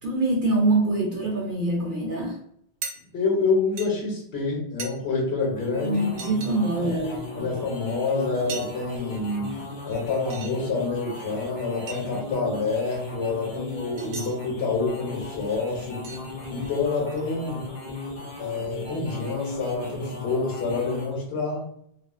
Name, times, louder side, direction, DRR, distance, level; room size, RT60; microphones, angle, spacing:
voice 1, 0.0-2.4 5.8-7.5, right 2 dB, 60° right, -3 dB, 0.7 m, -25 dB
sound 1, 2.8-2.9 3.8-3.9 4.8-4.9 5.8-5.9 6.2-6.6 8.1-8.2 8.5-8.9 9.7-10.5 11.3-11.4 11.8-12.0 14.0-14.4 15.4-15.5 16.0-16.2 16.6-17.2, right 5 dB, 90° right, 0.8 m, -37 dB
voice 2, 3.1-6.1 6.8-7.0 7.4-9.5 9.9-16.0 16.5-17.6 18.4-21.7, left 4 dB, 75° left, -2 dB, 1.0 m, -27 dB
sound 2, 5.4-21.2, left 2 dB, 45° left, 0.5 m, -37 dB
2.4 x 2.3 x 2.3 m, 0.70 s
omnidirectional pair, 1.1 m